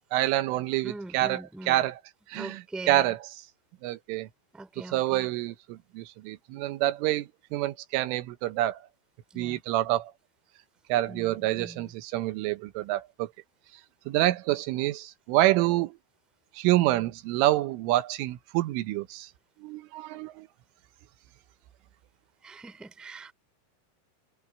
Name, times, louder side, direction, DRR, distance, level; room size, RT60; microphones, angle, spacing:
voice 1, 0.1-2.0 2.3-3.3 3.8-4.3 4.9-8.8 9.4-10.1 10.9-13.3 14.1-15.9 16.6-19.3 19.6-20.5, right 15 dB, 90° right, 3.6 m, -27 dB
voice 2, 0.8-1.8 2.3-3.1 4.5-5.3 9.3-9.6 11.1-11.9 22.4-23.3, right 2 dB, ahead, 2.0 m, -42 dB
omnidirectional pair, 5.6 m